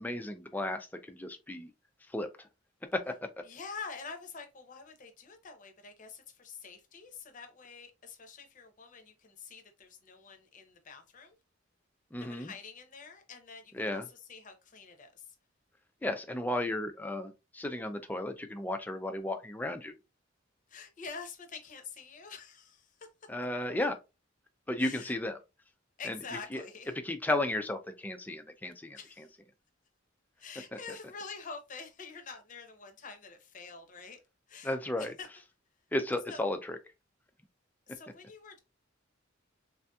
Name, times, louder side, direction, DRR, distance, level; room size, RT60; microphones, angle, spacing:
voice 1, 0.0-1.7 2.1-2.5 2.9-3.1 12.1-12.5 13.7-14.1 16.0-19.9 23.3-24.0 24.7-25.4 26.0-26.2 26.5-26.6 27.0-29.3 34.6-35.1 35.9-36.8, left 1 dB, 10° left, 0.3 m, -34 dB
voice 2, 3.4-11.4 12.2-15.3 20.7-22.9 24.8-25.1 26.0-26.9 29.0-29.3 30.4-34.2 34.5-35.3 36.3-36.4 37.9-38.6, left 5 dB, 40° left, 0.7 m, -46 dB
3.4 x 2.6 x 2.2 m
head